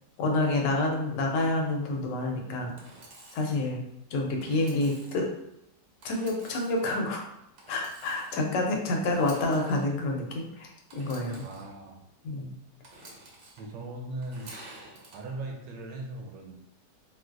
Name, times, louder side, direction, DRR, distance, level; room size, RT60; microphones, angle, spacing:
voice 1, 0.2-2.7 3.3-3.8 4.1-5.3 6.0-7.2 7.7-11.4 12.2-12.5, left 2 dB, 80° left, 1 dB, 1.3 m, -28 dB
Engine / Sawing, 2.8-3.6 4.4-5.2 6.0-6.8 7.6-8.4 9.0-9.8 10.9-11.7 12.8-13.6 14.2-15.2, right 2 dB, 60° right, 0.8 m, -49 dB
voice 2, 11.4-12.0 13.6-14.5 15.1-16.6, right 2 dB, 90° right, 1 dB, 1.3 m, -39 dB
3.6 x 2.5 x 2.4 m, 0.81 s
omnidirectional pair, 1.9 m